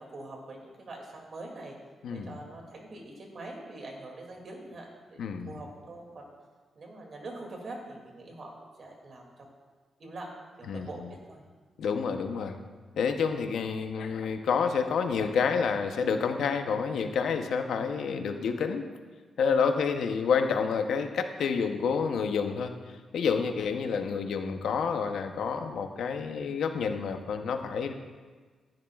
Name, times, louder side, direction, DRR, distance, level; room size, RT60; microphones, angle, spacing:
voice 1, 0.0-1.7 2.1-6.3 6.7-9.5 10.0-10.3 10.6-11.4 19.6-19.9, right 2 dB, 50° right, 0 dB, 2.4 m, -44 dB
voice 2, 2.0-2.4 5.2-5.6 10.7-11.1 11.8-12.6 13.0-18.9 19.4-22.7 23.1-27.9, left 6 dB, 80° left, 6 dB, 0.8 m, -29 dB
14.0 x 10.5 x 2.4 m, 1.4 s
cardioid pair, 105°, 0 cm